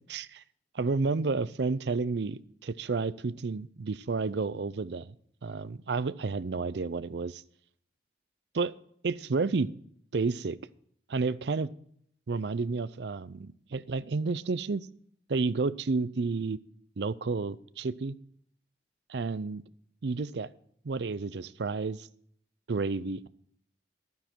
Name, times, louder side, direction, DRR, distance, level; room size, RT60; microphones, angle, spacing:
voice 1, 0.1-0.4 0.7-5.2 5.4-7.4 8.5-8.8 9.0-9.7 10.1-10.6 11.1-11.7 12.3-14.8 15.3-16.6 17.0-18.2 19.1-19.6 20.0-20.5 20.8-22.1 22.7-23.3, right 4 dB, 75° right, 17 dB, 0.5 m, -31 dB
12.5 x 9.5 x 4.5 m, 0.65 s
head